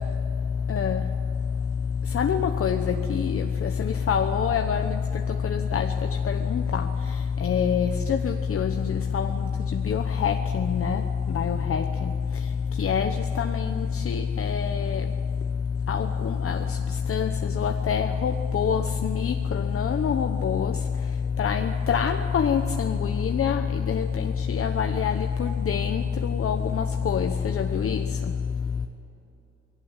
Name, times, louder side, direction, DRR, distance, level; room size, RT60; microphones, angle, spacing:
voice 1, 2.1-2.8 3.1-3.4 4.1-4.9 5.5-5.9 6.3-6.8 7.4-8.7 9.1-9.3 9.9-11.0 11.3-11.8 12.8-13.1 13.4-13.5 14.1-15.0 15.9-16.6 17.1-17.3 17.6-19.3 19.7-20.7 21.4-23.6 23.9-24.0 24.6-26.0 26.3-27.3 27.5-28.0, left 7 dB, 45° left, 5 dB, 1.0 m, -25 dB
20.0 x 17.5 x 9.0 m, 2.7 s
cardioid pair, 110°, 31 cm